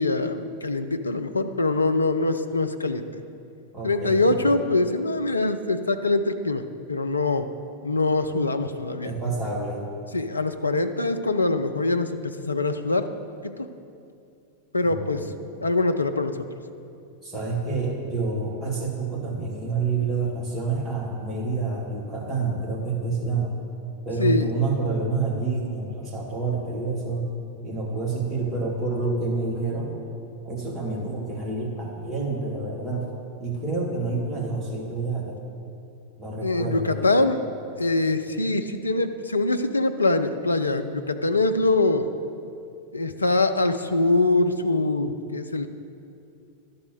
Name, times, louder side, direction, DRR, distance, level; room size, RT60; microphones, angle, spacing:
voice 1, 0.0-3.1 3.8-6.6 6.9-7.5 7.8-9.1 10.1-13.1 13.4-13.7 14.7-15.2 15.6-16.5 24.2-24.5 36.4-37.4 37.8-42.1 42.9-45.7, left 2 dB, 80° left, 8 dB, 0.4 m, -23 dB
voice 2, 3.7-4.6 9.0-9.8 14.8-15.3 17.2-23.5 24.1-27.3 27.6-30.0 30.4-33.1 33.4-35.4 36.2-37.1, right 3 dB, 15° right, -4 dB, 2.0 m, -28 dB
12.0 x 4.2 x 6.4 m, 2.6 s
figure-of-eight pair, 90°, 0 cm